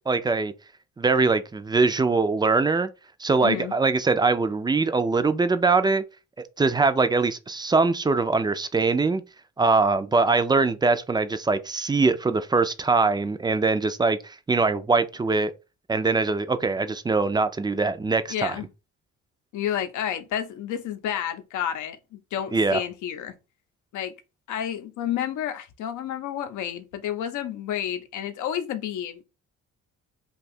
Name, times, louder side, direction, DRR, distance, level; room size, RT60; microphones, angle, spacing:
voice 1, 0.1-0.5 1.0-2.9 3.2-6.0 6.6-9.2 9.6-15.5 15.9-18.6 22.5-22.8, right 3 dB, 15° right, 0.3 m, -22 dB
voice 2, 3.4-3.7 18.3-18.7 19.5-23.3 23.9-24.1 24.5-29.2, left 10 dB, 80° left, 0.6 m, -30 dB
2.7 x 2.3 x 4.1 m
cardioid pair, 90°, 30 cm